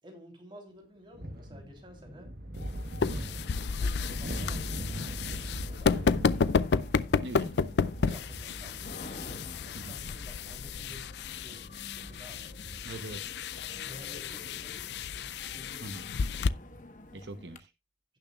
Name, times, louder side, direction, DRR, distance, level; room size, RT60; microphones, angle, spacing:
voice 1, 0.0-2.4 3.0-3.5 3.8-4.7 5.3-6.4 7.9-11.1 11.4-12.6 13.8-16.1, equal, 30° right, 3.2 m, -52 dB
sound 1, 1.1-17.0, equal, 60° right, 1.1 m, -42 dB
sound 2, 2.5-16.5, left 5 dB, 75° left, 0.4 m, -32 dB
sound 3, 3.2-17.6, left 1 dB, 45° left, 1.1 m, -50 dB
voice 2, 7.2-7.6 9.7-10.0 12.8-13.3 15.8-16.1 17.1-17.7, right 2 dB, 80° right, 0.8 m, -42 dB
16.0 x 7.0 x 2.3 m
head